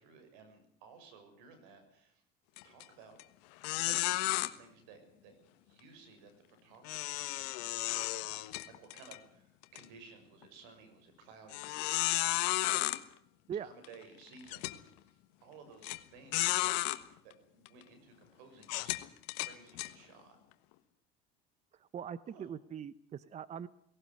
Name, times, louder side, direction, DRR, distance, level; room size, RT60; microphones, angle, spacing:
voice 1, 0.0-2.2 2.6-3.2 3.8-11.9 12.6-13.0 13.5-16.8 17.2-19.0 19.4-20.4 22.3-22.5, right 4 dB, 85° right, 8 dB, 6.5 m, -57 dB
sound 1, 2.6-2.8 3.2-3.3 3.6-4.5 6.8-9.2 9.6-9.8 10.4-10.5 11.5-13.0 13.8-13.9 14.5-14.8 15.8-16.0 16.3-17.0 17.7-17.8 18.6-19.9, left 19 dB, 90° left, 1.4 m, -33 dB
voice 2, 21.7-23.7, right 8 dB, 30° right, 17 dB, 0.8 m, -42 dB
18.0 x 18.0 x 9.5 m, 0.69 s
supercardioid pair, 115°, 21 cm